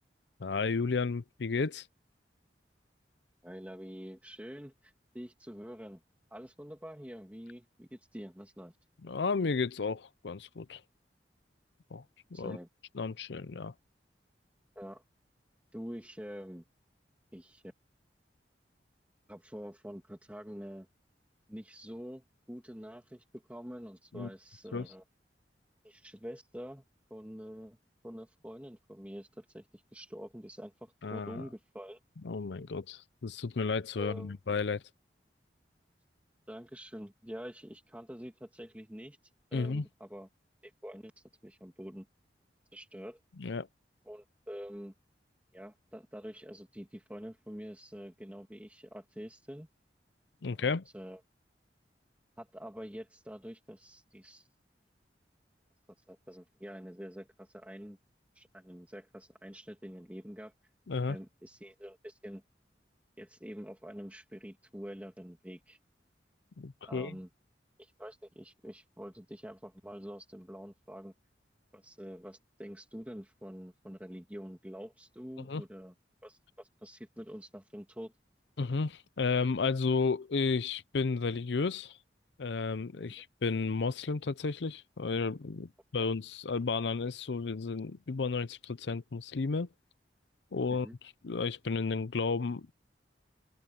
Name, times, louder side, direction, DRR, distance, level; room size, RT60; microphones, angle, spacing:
voice 1, 0.4-1.9 9.0-10.8 11.9-12.0 12.4-12.6 13.0-13.7 24.1-24.3 24.7-24.8 31.0-31.4 32.2-34.8 39.5-39.8 43.4-43.7 50.4-50.8 60.9-61.2 66.6-67.1 75.5-75.6 78.6-82.0 82.4-89.7 90.5-90.9 91.2-92.7, left 4 dB, 80° left, 0.6 m, -32 dB
voice 2, 3.4-6.0 6.3-8.8 12.3-12.7 14.8-15.0 15.7-16.6 17.3-17.6 19.3-20.9 21.5-25.0 25.8-26.8 27.1-27.8 28.0-32.0 34.0-34.3 36.5-39.2 39.5-40.3 40.6-42.1 42.7-43.2 44.0-44.9 45.5-49.7 50.4-51.2 52.4-54.5 56.1-58.0 58.3-60.5 61.1-62.4 63.2-65.8 66.8-67.3 67.8-71.1 71.7-75.9 76.2-78.1 83.0-83.1 90.7-91.0, equal, 10° right, 2.6 m, -46 dB
head